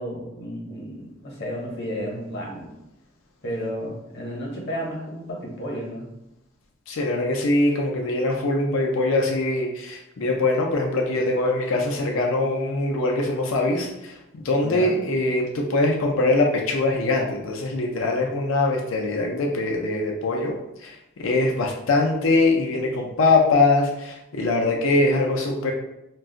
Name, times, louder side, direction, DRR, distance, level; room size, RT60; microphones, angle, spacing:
voice 1, 0.0-2.7 3.4-6.1 14.6-14.9, equal, 60° left, -1 dB, 0.9 m, -32 dB
voice 2, 6.9-20.6 20.8-25.7, left 2 dB, 90° left, 1 dB, 0.5 m, -22 dB
2.4 x 2.3 x 3.7 m, 0.87 s
head